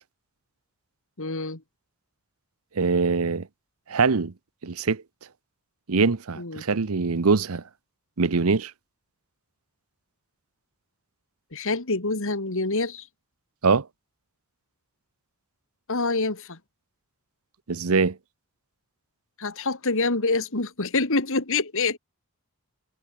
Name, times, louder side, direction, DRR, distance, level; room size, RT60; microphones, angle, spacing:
voice 1, 1.2-1.6 6.4-6.6 11.5-13.1 15.9-16.6 19.4-22.0, left 3 dB, 65° left, 2.6 m, -26 dB
voice 2, 2.8-3.5 3.9-4.3 4.6-5.0 5.9-7.6 8.2-8.7 13.6-13.9 17.7-18.2, right 4 dB, 70° right, 0.8 m, -23 dB
head